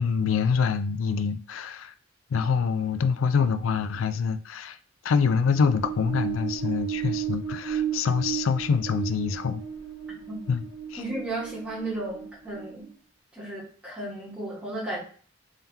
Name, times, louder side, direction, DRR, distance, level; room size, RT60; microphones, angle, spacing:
voice 1, 0.0-1.9 2.3-4.8 5.0-9.6 10.5-10.6 10.9-11.0, left 6 dB, 85° left, 0.4 m, -25 dB
sound 1, 5.4-12.9, right 10 dB, 85° right, 1.1 m, -34 dB
voice 2, 11.0-12.9 13.3-15.0, right 2 dB, 5° right, 1.5 m, -34 dB
3.7 x 3.4 x 2.8 m
head